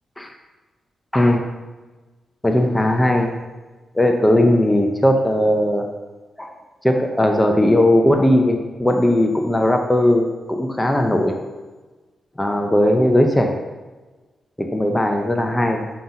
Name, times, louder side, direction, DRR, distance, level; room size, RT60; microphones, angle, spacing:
voice 1, 1.1-1.4 2.4-3.4 3.9-5.9 6.4-6.5 6.8-11.4 12.4-13.6 14.6-15.9, left 1 dB, 15° left, 3 dB, 0.9 m, -18 dB
7.5 x 5.4 x 2.9 m, 1.2 s
supercardioid pair, 40°, 0 cm